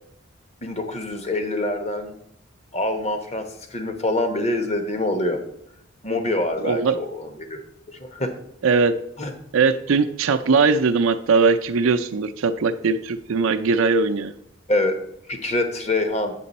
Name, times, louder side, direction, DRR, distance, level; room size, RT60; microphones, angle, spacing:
voice 1, 0.6-2.2 2.7-5.4 6.0-7.6 7.9-8.3 9.2-9.3 14.7-15.0 15.3-16.3, left 1 dB, 30° left, 6 dB, 0.9 m, -25 dB
voice 2, 6.6-7.0 8.6-8.9 9.5-14.3, right 4 dB, 85° right, 7 dB, 0.5 m, -20 dB
8.4 x 6.8 x 4.1 m, 0.74 s
head